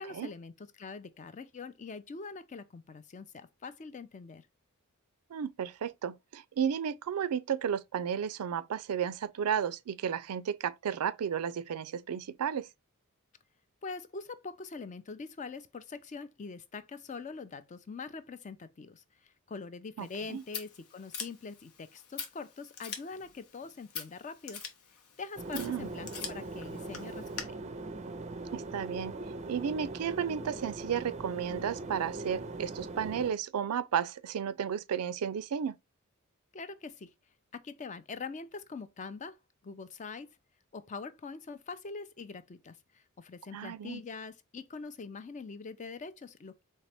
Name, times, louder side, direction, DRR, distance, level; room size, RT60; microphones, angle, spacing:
voice 1, 0.0-4.5 13.8-24.6 25.2-27.5 36.5-37.1 37.5-39.4 39.6-40.3 40.7-46.6, left 4 dB, 35° left, 0.4 m, -43 dB
voice 2, 5.3-12.7 20.0-20.4 25.5-25.9 28.5-29.1 29.5-35.8 43.5-44.0, right 8 dB, 90° right, 0.4 m, -33 dB
Scissors, 20.0-27.4, left 7 dB, 85° left, 1.0 m, -44 dB
sound 1, 25.4-33.3, right 2 dB, 30° right, 0.4 m, -41 dB
4.0 x 3.3 x 3.3 m
head